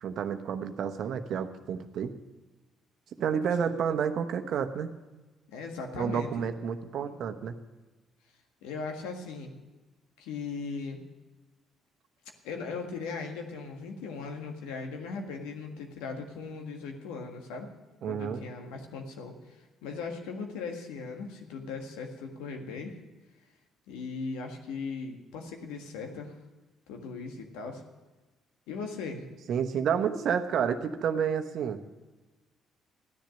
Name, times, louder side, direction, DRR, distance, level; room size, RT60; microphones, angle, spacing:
voice 1, 0.0-2.1 3.2-4.9 6.0-7.5 18.0-18.4 29.5-31.8, right 7 dB, 65° right, 8 dB, 1.0 m, -30 dB
voice 2, 5.5-6.4 8.6-9.5 10.2-11.0 12.4-17.7 18.1-23.0 23.9-26.3 26.9-27.8 28.7-29.2, left 4 dB, 80° left, 3 dB, 1.7 m, -38 dB
14.5 x 10.5 x 6.5 m, 1.2 s
hypercardioid pair, 55°, 0 cm